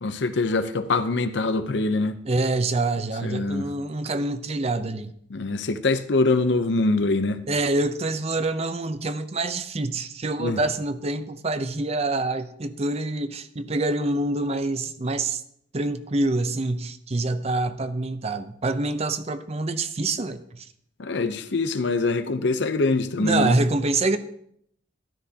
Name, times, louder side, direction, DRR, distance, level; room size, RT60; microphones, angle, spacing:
voice 1, 0.0-2.1 3.2-3.7 5.3-7.4 10.4-10.6 21.0-23.6, left 3 dB, 65° left, 0.7 m, -24 dB
voice 2, 2.2-5.1 7.5-15.4 15.7-20.7 23.2-24.2, right 2 dB, 35° right, 0.6 m, -26 dB
13.0 x 12.0 x 2.8 m
head